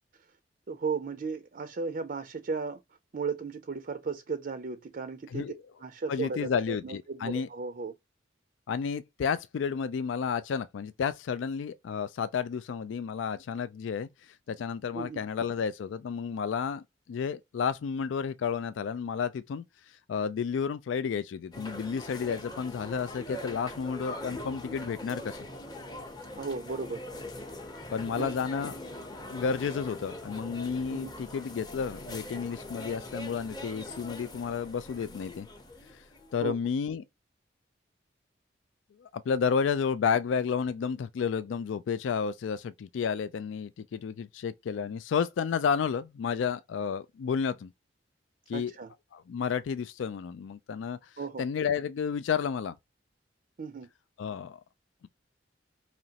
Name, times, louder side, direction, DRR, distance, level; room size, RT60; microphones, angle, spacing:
voice 1, 0.7-2.8 3.1-5.5 5.8-7.9 14.9-15.2 26.3-27.0 28.1-28.3 30.9-31.1 36.4-36.6 48.5-48.9 51.2-51.4 53.6-53.9, right 4 dB, 50° right, 0.4 m, -35 dB
voice 2, 6.1-7.5 8.7-25.4 27.9-28.8 29.3-35.5 35.9-36.0 36.3-37.0 39.0-47.7 48.5-48.7 49.1-52.8 54.2-54.6, left 6 dB, 85° left, 0.3 m, -31 dB
sound 1, 21.5-36.4, left 1 dB, 20° left, 0.8 m, -42 dB
5.0 x 3.0 x 2.8 m
head